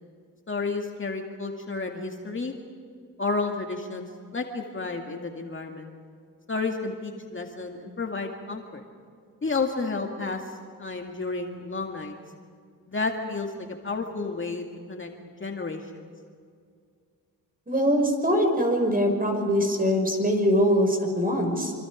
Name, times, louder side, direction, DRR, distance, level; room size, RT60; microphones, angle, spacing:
voice 1, 0.5-2.5 3.2-4.1 4.3-5.9 6.5-8.8 9.4-10.5 10.8-12.2 12.9-16.1, left 3 dB, 30° left, 2 dB, 2.2 m, -31 dB
voice 2, 17.7-21.7, equal, 20° right, 4 dB, 6.1 m, -23 dB
26.5 x 25.5 x 5.2 m, 2.2 s
cardioid pair, 65°, 38 cm